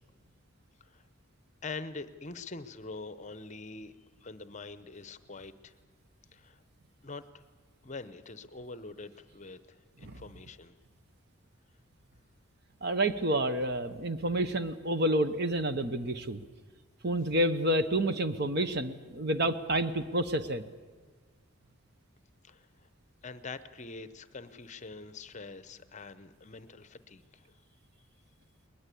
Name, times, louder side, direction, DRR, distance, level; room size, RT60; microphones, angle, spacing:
voice 1, 1.6-5.7 6.3-6.6 7.0-7.4 7.8-10.7 22.4-22.9 23.2-27.6, left 3 dB, 35° left, 13 dB, 0.8 m, -44 dB
voice 2, 12.8-16.4 17.0-20.6, right 1 dB, 50° right, 11 dB, 1.0 m, -29 dB
21.0 x 20.5 x 8.4 m, 1.4 s
head